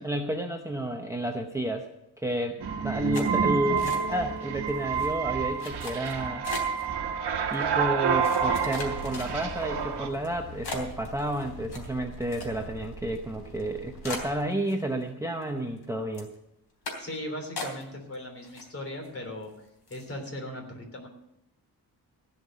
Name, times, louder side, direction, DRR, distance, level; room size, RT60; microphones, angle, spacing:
voice 1, 0.0-1.9 2.2-6.5 7.5-16.3, right 1 dB, 10° right, 3 dB, 0.7 m, -31 dB
sound 1, 2.6-10.1, right 6 dB, 80° right, 1.3 m, -28 dB
sound 2, 3.1-4.4 4.7-5.1 5.6-6.9 7.5-7.6 8.2-9.6 10.1-10.3 10.6-12.8 13.1-13.2 13.6-13.7 14.0-15.1 15.4-15.8 16.1-16.3 16.8-17.2 17.6-18.1 18.4-19.1 19.4-19.5 19.9-20.1, left 3 dB, 70° left, 3.5 m, -39 dB
sound 3, 8.7-14.4, right 1 dB, 85° left, 3.4 m, -44 dB
voice 2, 17.0-21.1, left 1 dB, 35° left, 2 dB, 3.3 m, -38 dB
15.5 x 5.8 x 9.1 m, 0.85 s
wide cardioid pair, 150°, 39 cm